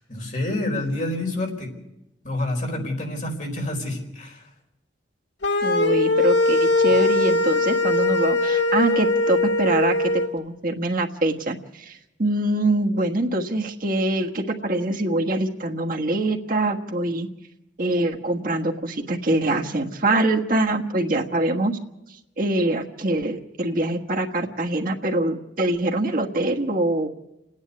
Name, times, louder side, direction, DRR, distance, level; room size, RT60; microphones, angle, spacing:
voice 1, 0.0-1.7 2.2-4.5, left 1 dB, 45° left, 2 dB, 4.4 m, -28 dB
sound 1, 5.4-10.3, left 2 dB, 85° left, 1.6 m, -20 dB
voice 2, 5.6-17.3 17.8-21.8 22.4-27.1, right 2 dB, 50° right, 2 dB, 1.5 m, -24 dB
28.5 x 9.7 x 9.5 m, 0.90 s
head